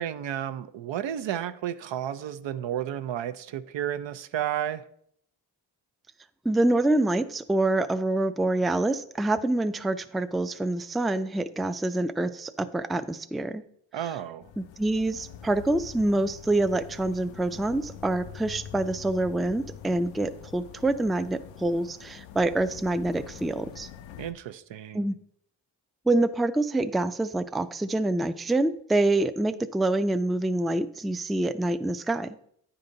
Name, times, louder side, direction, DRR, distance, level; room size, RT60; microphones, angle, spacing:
voice 1, 0.0-4.8 13.9-14.4 24.2-25.0, right 10 dB, 80° right, 0.6 m, -32 dB
voice 2, 6.5-13.6 14.6-23.9 24.9-25.2 26.1-32.4, right 2 dB, ahead, 0.3 m, -26 dB
sound 1, 14.4-24.3, left 9 dB, 85° left, 0.5 m, -45 dB
9.7 x 3.9 x 3.9 m
cardioid pair, 45°, 44 cm